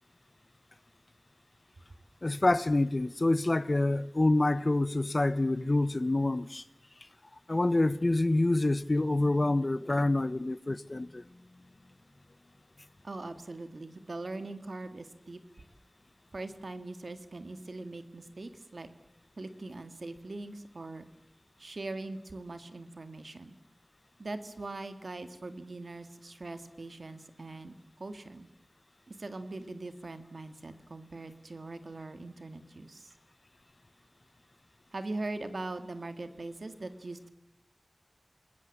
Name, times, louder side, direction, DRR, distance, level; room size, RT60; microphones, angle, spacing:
voice 1, 2.2-6.6 7.5-11.2, left 2 dB, 50° left, 1.0 m, -27 dB
voice 2, 13.0-15.4 16.3-18.9 19.4-21.1 21.6-23.6 24.2-28.5 29.1-33.1 34.9-37.3, right 2 dB, 85° right, 2.1 m, -41 dB
28.0 x 20.5 x 7.3 m
wide cardioid pair, 50°, 0 cm